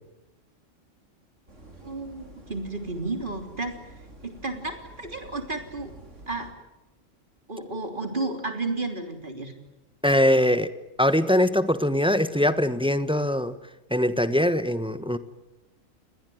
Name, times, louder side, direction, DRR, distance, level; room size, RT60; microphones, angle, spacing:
sound 1, 1.5-6.5, right 2 dB, 65° right, 4.4 m, -48 dB
voice 1, 1.8-3.8 4.2-5.9 6.3-6.5 7.5-9.5, right 2 dB, 40° right, 6 dB, 3.6 m, -32 dB
voice 2, 10.0-10.7 11.0-13.5 13.9-15.2, left 1 dB, 5° right, 12 dB, 1.2 m, -22 dB
29.5 x 21.0 x 9.4 m, 0.96 s
omnidirectional pair, 1.4 m